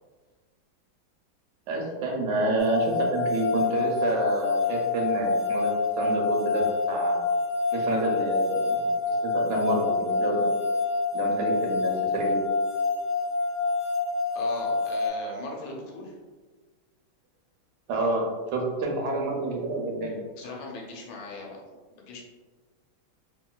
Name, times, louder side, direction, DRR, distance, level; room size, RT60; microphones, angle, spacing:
voice 1, 1.7-7.2 7.7-10.5 11.1-12.4 17.9-20.2, right 2 dB, 70° right, -1 dB, 1.0 m, -28 dB
sound 1, 2.6-15.1, left 3 dB, 60° left, 1.1 m, -27 dB
voice 2, 14.3-16.1 20.4-21.6 22.0-22.2, left 3 dB, 80° left, -1 dB, 1.4 m, -38 dB
2.9 x 2.8 x 2.2 m, 1.3 s
omnidirectional pair, 2.2 m